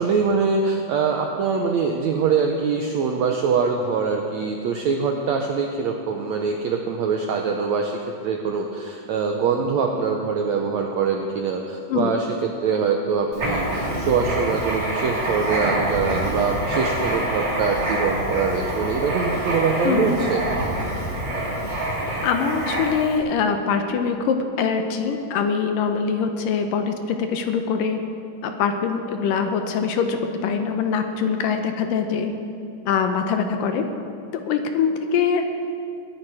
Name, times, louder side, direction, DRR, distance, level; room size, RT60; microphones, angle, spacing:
voice 1, 0.0-7.9 8.2-12.3 12.6-20.4, right 5 dB, 75° right, 2 dB, 1.6 m, -23 dB
voice 2, 11.9-12.2 19.8-20.2 22.2-28.0 28.4-32.3 32.9-33.8 34.5-35.4, left 6 dB, 75° left, 6 dB, 2.3 m, -23 dB
Writing, 13.3-23.1, right 1 dB, 30° right, 3.0 m, -26 dB
22.0 x 10.5 x 4.9 m, 2.6 s
omnidirectional pair, 4.2 m